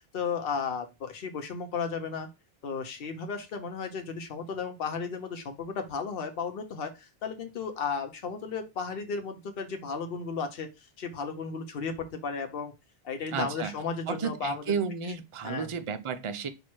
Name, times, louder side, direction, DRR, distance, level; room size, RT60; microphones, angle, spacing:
voice 1, 0.1-2.3 2.6-12.7 13.0-14.7 15.4-15.7, left 5 dB, 65° left, 1.0 m, -34 dB
voice 2, 13.3-13.7 14.1-16.5, right 6 dB, 40° right, 0.4 m, -32 dB
4.6 x 2.7 x 4.3 m
omnidirectional pair, 1.0 m